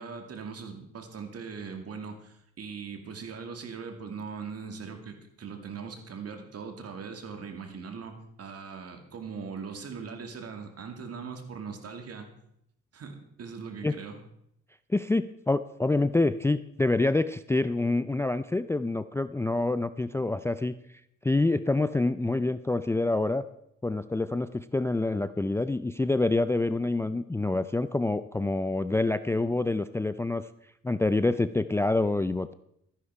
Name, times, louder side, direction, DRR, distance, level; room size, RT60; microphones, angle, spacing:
voice 1, 0.0-12.3 12.9-14.2, right 5 dB, 55° right, 5 dB, 2.4 m, -40 dB
voice 2, 14.9-20.7 21.2-23.4 23.8-30.4 30.8-32.5, left 2 dB, 10° left, 13 dB, 0.4 m, -26 dB
13.5 x 10.0 x 4.8 m, 0.75 s
cardioid pair, 90°, 30 cm